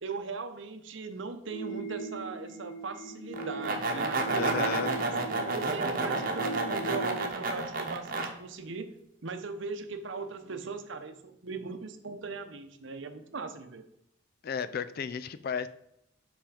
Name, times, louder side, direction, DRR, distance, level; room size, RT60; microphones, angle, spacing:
voice 1, 0.0-5.1 5.5-9.0 9.2-13.8, right 4 dB, 65° right, 8 dB, 0.8 m, -39 dB
sound 1, 1.5-7.3, right 2 dB, 90° left, 2.6 m, -40 dB
sound 2, 3.3-8.3, right 3 dB, 45° right, 1.0 m, -31 dB
voice 2, 4.3-4.9 14.4-15.7, left 6 dB, 45° left, 13 dB, 0.3 m, -33 dB
5.8 x 5.1 x 5.0 m, 0.80 s
head